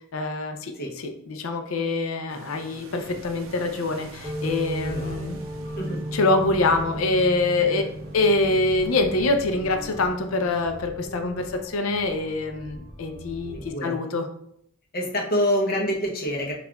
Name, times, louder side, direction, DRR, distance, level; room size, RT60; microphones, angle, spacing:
voice 1, 0.1-5.4 6.1-7.8 8.1-14.3, left 2 dB, 80° left, 6 dB, 0.5 m, -25 dB
sound 1, 2.3-10.9, right 3 dB, 75° right, 0.5 m, -46 dB
sound 2, 3.0-13.7, equal, 5° left, 1.1 m, -43 dB
sound 3, 4.2-11.5, right 1 dB, 25° right, 0.6 m, -36 dB
voice 2, 4.8-5.2 5.8-6.0 7.6-7.9 13.5-13.9 14.9-16.5, equal, 45° left, 0 dB, 0.7 m, -27 dB
5.3 x 2.4 x 2.3 m, 0.72 s
head